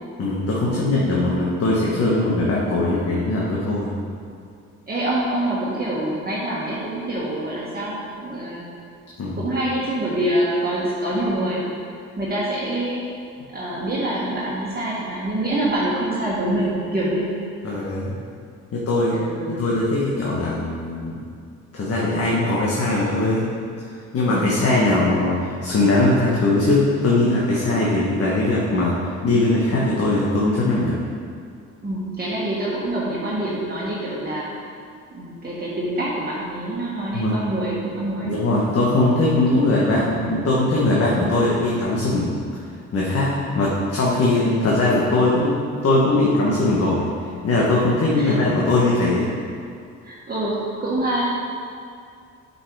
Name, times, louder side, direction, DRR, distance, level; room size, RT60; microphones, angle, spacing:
voice 1, 0.2-3.9 9.2-9.4 17.6-18.2 18.7-19.2 19.5-21.1 21.7-23.5 24.1-31.0 37.1-37.3 38.2-42.4 42.9-45.6 45.8-47.1 47.4-49.3, left 2 dB, 50° left, -5 dB, 1.5 m, -20 dB
voice 2, 4.9-8.6 9.3-11.6 12.2-13.0 13.5-17.4 19.1-19.7 24.3-24.5 31.8-34.5 35.1-38.7 39.6-39.8 48.1-48.4 50.0-51.2, right 1 dB, 30° right, -7 dB, 1.6 m, -25 dB
8.2 x 5.6 x 4.7 m, 2.3 s
cardioid pair, 90°, 30 cm